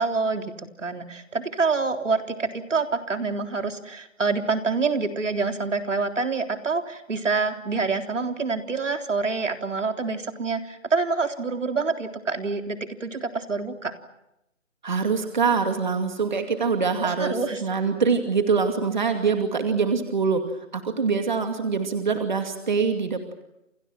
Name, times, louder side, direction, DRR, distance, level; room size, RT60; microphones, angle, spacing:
voice 1, 0.0-13.9 17.0-17.6, right 4 dB, 70° right, 6 dB, 3.7 m, -26 dB
voice 2, 14.8-20.4 20.7-23.3, right 5 dB, 35° right, 6 dB, 2.5 m, -24 dB
29.5 x 28.5 x 6.1 m, 0.87 s
hypercardioid pair, 175°, 39 cm